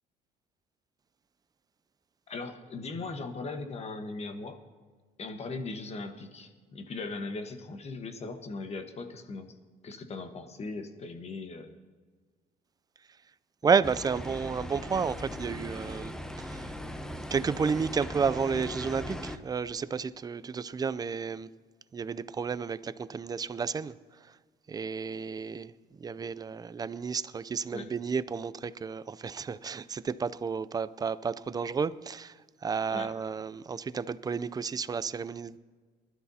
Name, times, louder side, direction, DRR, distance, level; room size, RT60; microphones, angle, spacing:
voice 1, 2.3-4.6 5.2-9.6 9.8-11.8 27.7-27.9 32.9-33.1, left 3 dB, 40° left, 1.3 m, -39 dB
voice 2, 13.6-16.7 17.3-21.5 21.9-24.0 24.3-24.4 24.7-25.7 26.0-35.6, right 5 dB, 25° right, 0.4 m, -31 dB
sound 1, 13.8-19.4, equal, 5° left, 0.7 m, -39 dB
21.0 x 12.5 x 2.8 m
cardioid pair, 110°, 17 cm